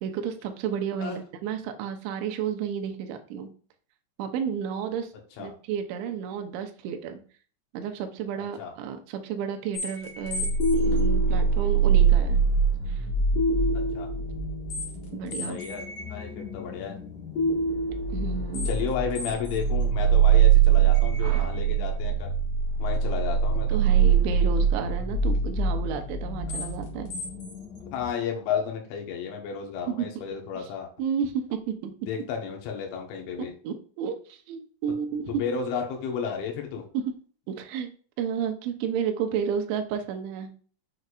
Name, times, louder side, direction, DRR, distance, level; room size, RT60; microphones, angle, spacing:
voice 1, 0.0-3.5 4.2-5.1 5.4-7.2 7.7-12.4 12.9-13.1 15.1-15.6 18.1-18.7 21.2-21.5 23.7-27.1 29.9-30.1 30.6-30.7 31.0-32.2 33.4-35.4 36.9-37.1 37.5-37.9 38.2-40.5, right 7 dB, 75° right, 6 dB, 2.8 m, -32 dB
voice 2, 8.4-8.7 13.7-14.1 15.4-15.8 16.1-17.0 18.7-22.3 22.8-23.8 26.5-26.7 27.9-30.9 32.1-33.5 35.3-36.9, left 7 dB, 70° left, 1 dB, 3.5 m, -32 dB
sound 1, 9.7-28.1, right 6 dB, 50° left, 2.2 m, -24 dB
8.1 x 6.5 x 2.5 m, 0.42 s
omnidirectional pair, 6.0 m